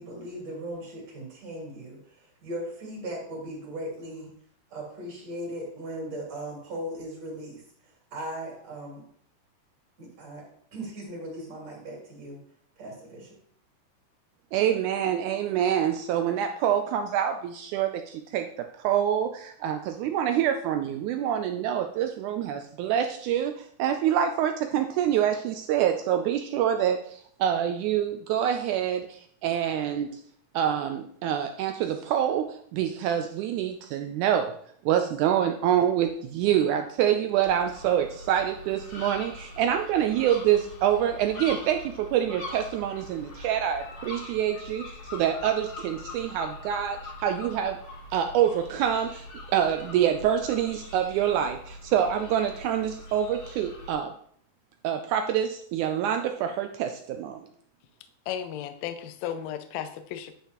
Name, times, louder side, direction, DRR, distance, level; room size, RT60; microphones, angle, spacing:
voice 1, 0.0-4.3 4.7-9.0 10.0-10.4 10.7-12.4 12.8-13.4, right 1 dB, 50° right, -3 dB, 3.6 m, -38 dB
voice 2, 14.5-30.2 30.5-34.5 34.8-47.8 48.1-54.1 54.8-57.5, right 10 dB, 85° right, 6 dB, 1.7 m, -26 dB
sound 1, 37.5-53.9, left 2 dB, 45° left, 2.6 m, -42 dB
voice 3, 58.3-60.3, left 9 dB, 85° left, 8 dB, 1.5 m, -34 dB
9.9 x 5.6 x 3.0 m, 0.62 s
omnidirectional pair, 4.0 m